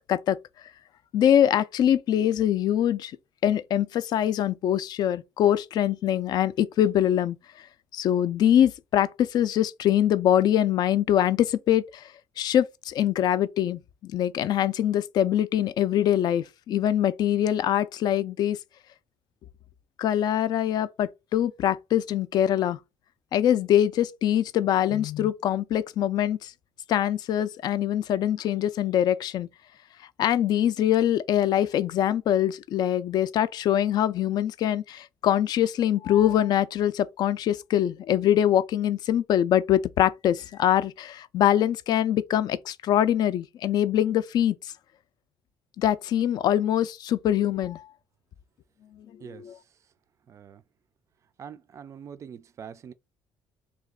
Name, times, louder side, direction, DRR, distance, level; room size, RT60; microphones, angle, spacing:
voice 1, 1.1-3.1 3.4-7.4 7.9-12.0 12.4-18.6 20.0-22.8 23.3-26.5 26.9-29.5 30.2-44.6 45.8-47.9 49.2-49.6, left 11 dB, 55° left, 0.4 m, -23 dB
voice 2, 50.3-50.6 51.4-52.9, right 7 dB, 40° right, 0.3 m, -43 dB
3.2 x 2.9 x 3.6 m
cardioid pair, 135°, 8 cm